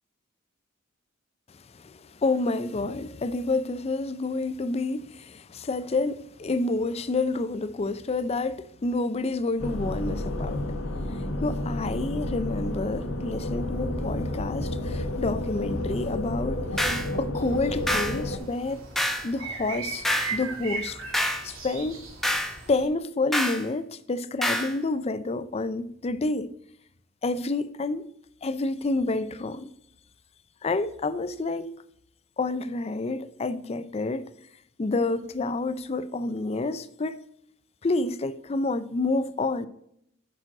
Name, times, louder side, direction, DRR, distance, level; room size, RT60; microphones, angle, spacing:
voice 1, 2.2-10.6 11.4-16.7 17.1-18.8 19.2-20.0 20.3-21.0 21.4-22.0 22.7-26.5 27.2-28.0 28.4-29.7 30.6-31.7 32.4-34.3 34.8-37.2 37.8-39.7, left 3 dB, 30° left, 0.4 m, -28 dB
sound 1, 9.6-18.4, left 1 dB, 80° left, 1.1 m, -31 dB
sound 2, 16.8-17.1 17.9-18.2 19.0-19.3 20.0-20.4 21.1-21.5 22.2-22.6 23.3-23.6 24.4-24.7, equal, ahead, 0.7 m, -26 dB
sound 3, 17.4-22.9, right 4 dB, 85° right, 1.9 m, -38 dB
8.9 x 6.1 x 3.8 m
head